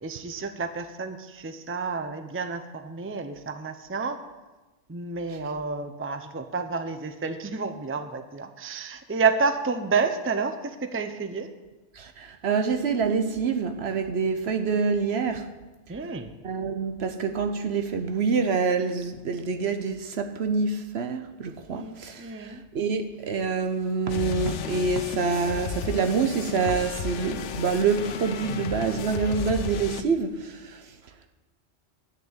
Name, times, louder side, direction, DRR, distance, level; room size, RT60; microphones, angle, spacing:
voice 1, 0.0-4.2 4.9-11.5 15.9-16.3 21.7-22.6, right 4 dB, 15° right, 8 dB, 0.6 m, -30 dB
voice 2, 12.0-15.5 16.4-30.8, right 5 dB, 65° right, 7 dB, 1.1 m, -26 dB
sound 1, 24.1-30.0, left 6 dB, 90° left, 1.0 m, -34 dB
10.5 x 6.7 x 8.8 m, 1.2 s
omnidirectional pair, 1.2 m